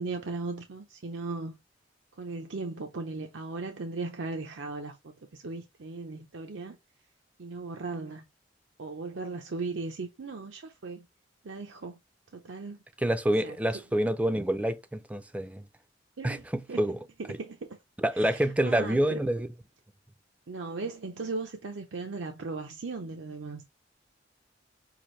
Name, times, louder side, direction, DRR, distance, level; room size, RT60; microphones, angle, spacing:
voice 1, 0.0-1.6 2.1-6.8 7.4-8.3 8.8-11.0 11.4-12.0 12.3-12.8 13.4-13.6 16.2-17.8 18.1-19.2 20.5-23.6, right 3 dB, 80° right, 0.6 m, -37 dB
voice 2, 13.0-15.6 16.2-17.0 17.3-17.4 18.0-19.5, right 1 dB, 5° right, 0.4 m, -27 dB
5.8 x 2.6 x 3.1 m
head